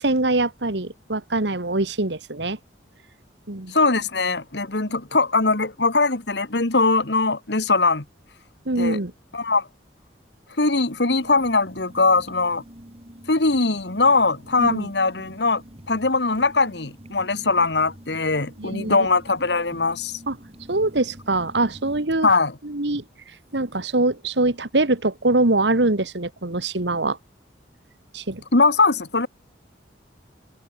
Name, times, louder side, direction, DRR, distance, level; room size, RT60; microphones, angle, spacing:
voice 1, 0.0-2.6 3.5-3.7 8.7-9.1 14.6-14.9 18.6-19.1 20.3-20.4 20.7-22.3 22.6-23.0 23.5-27.2 28.1-28.4, right 2 dB, 75° right, 1.9 m, -23 dB
voice 2, 3.7-8.0 8.8-9.0 9.3-9.7 10.6-12.6 13.3-15.6 15.9-20.2 22.2-22.5 28.5-29.3, left 3 dB, 70° left, 2.0 m, -21 dB
sound 1, 11.1-22.0, equal, 35° right, 3.6 m, -46 dB
head